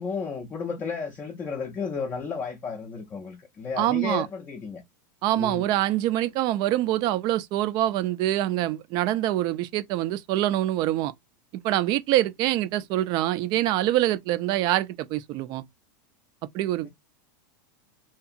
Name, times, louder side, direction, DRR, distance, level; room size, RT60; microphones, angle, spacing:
voice 1, 0.0-4.8 5.4-5.6, left 5 dB, 20° left, 0.4 m, -33 dB
voice 2, 3.8-4.3 5.2-11.1 11.6-15.6 16.5-16.9, right 14 dB, 40° right, 0.3 m, -25 dB
2.8 x 2.3 x 2.5 m
supercardioid pair, 135°, 11 cm